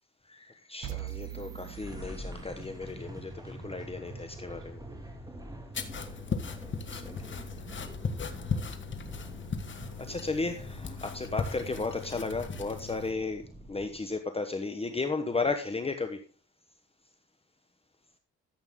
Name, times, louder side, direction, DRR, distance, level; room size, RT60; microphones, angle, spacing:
voice 1, 0.3-4.8 6.9-7.4 9.7-16.2, left 3 dB, 20° left, 7 dB, 1.1 m, -34 dB
sound 1, 0.8-2.9, right 15 dB, 70° right, 1.1 m, -42 dB
sound 2, 1.0-14.2, right 1 dB, 10° right, 2.4 m, -45 dB
sound 3, 5.7-13.1, left 5 dB, 40° left, 1.6 m, -37 dB
14.0 x 7.9 x 3.7 m, 0.37 s
cardioid pair, 90°, 30 cm